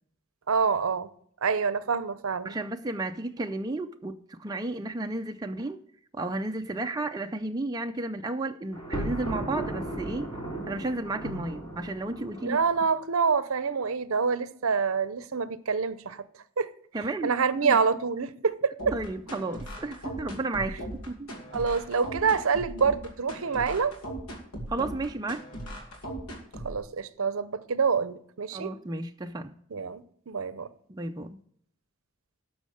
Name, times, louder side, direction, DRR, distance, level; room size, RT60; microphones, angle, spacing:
voice 1, 0.5-1.1 1.4-2.5 12.4-16.2 16.6-16.7 17.2-18.9 21.5-24.0 26.6-28.7 29.7-30.7, right 5 dB, 70° right, 0.6 m, -26 dB
voice 2, 2.4-5.8 6.1-12.6 16.9-17.3 17.6-17.8 18.9-21.3 24.7-25.5 28.5-29.6 30.9-31.4, right 2 dB, 15° right, 0.4 m, -33 dB
Thunder, 8.7-12.8, right 1 dB, 20° left, 2.9 m, -36 dB
sound 1, 18.8-26.8, right 1 dB, 80° left, 2.5 m, -38 dB
12.0 x 6.3 x 6.4 m
head